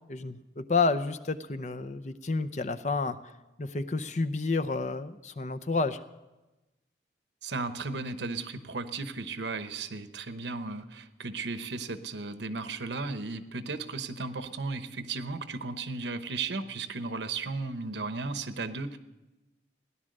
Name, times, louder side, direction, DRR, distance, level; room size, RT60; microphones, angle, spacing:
voice 1, 0.1-3.2 3.6-6.0, left 3 dB, 40° left, 10 dB, 0.6 m, -30 dB
voice 2, 7.4-19.0, right 3 dB, 85° right, 10 dB, 1.0 m, -35 dB
17.0 x 11.0 x 6.5 m, 1.0 s
head